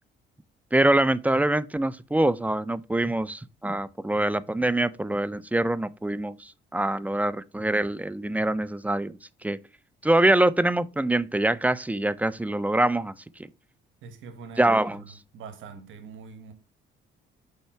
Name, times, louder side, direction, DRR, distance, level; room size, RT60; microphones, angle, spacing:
voice 1, 0.7-9.6 10.0-13.1 14.6-15.0, right 1 dB, 10° right, 0.3 m, -24 dB
voice 2, 14.0-16.5, right 5 dB, 80° right, 1.3 m, -44 dB
5.6 x 4.3 x 4.6 m
cardioid pair, 90°, 20 cm